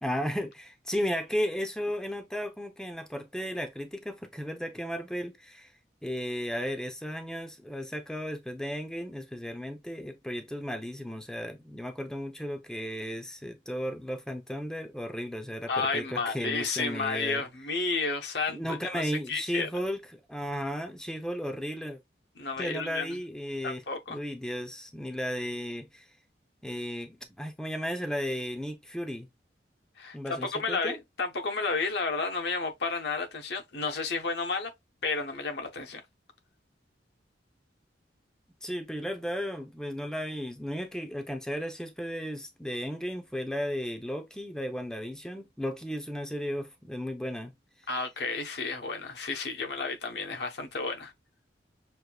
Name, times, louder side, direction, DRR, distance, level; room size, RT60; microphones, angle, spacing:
voice 1, 0.0-5.7 6.0-17.4 18.5-22.0 22.6-23.8 24.1-26.1 26.6-29.3 30.1-31.0 38.6-47.5, equal, 5° left, 0.6 m, -34 dB
voice 2, 15.7-19.7 22.4-23.2 23.6-24.2 30.0-34.7 35.0-36.0 47.9-51.1, left 4 dB, 70° left, 0.9 m, -32 dB
6.5 x 2.6 x 2.3 m
head